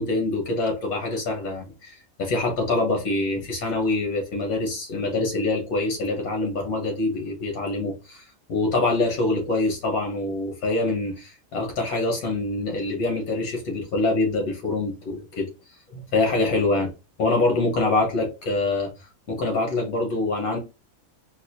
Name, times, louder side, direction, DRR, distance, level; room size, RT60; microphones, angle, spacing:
voice 1, 0.0-15.5 15.9-16.9 17.2-18.9 19.3-20.6, left 2 dB, 90° left, 1.7 m, -25 dB
4.1 x 2.4 x 2.7 m
omnidirectional pair, 1.5 m